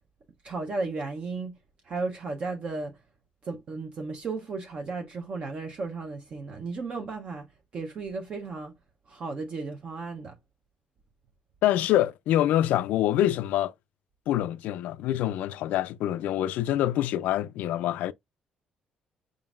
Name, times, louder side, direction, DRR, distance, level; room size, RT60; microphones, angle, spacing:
voice 1, 0.4-1.6 1.9-2.9 3.4-7.5 7.7-8.7 9.1-10.3, right 3 dB, 40° right, 0.7 m, -34 dB
voice 2, 11.6-13.7 14.3-18.1, left 12 dB, 90° left, 0.3 m, -25 dB
4.9 x 3.8 x 2.4 m
cardioid pair, 160°, 3 cm